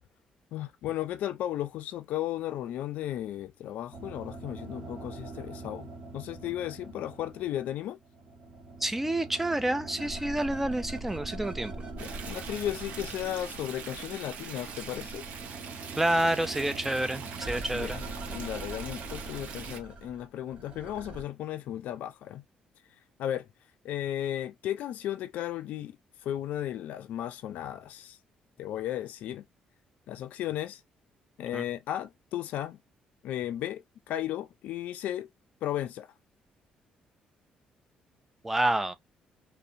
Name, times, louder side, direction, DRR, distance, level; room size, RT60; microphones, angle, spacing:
voice 1, 0.5-8.0 11.9-15.3 17.7-22.4 23.2-23.5 23.8-26.0 26.2-28.2 28.6-29.4 30.1-30.8 31.4-32.8 33.2-35.3 35.6-36.1, left 12 dB, 75° left, 0.3 m, -35 dB
sound 1, 3.9-7.7 8.0-14.0 14.2-21.2, right 2 dB, 45° right, 0.9 m, -42 dB
voice 2, 8.8-11.7 16.0-18.0 31.5-31.6 38.4-38.9, right 1 dB, 10° right, 0.3 m, -28 dB
Stream, 12.0-19.8, right 6 dB, 65° right, 0.5 m, -42 dB
2.7 x 2.1 x 2.4 m
cardioid pair, 140°, 3 cm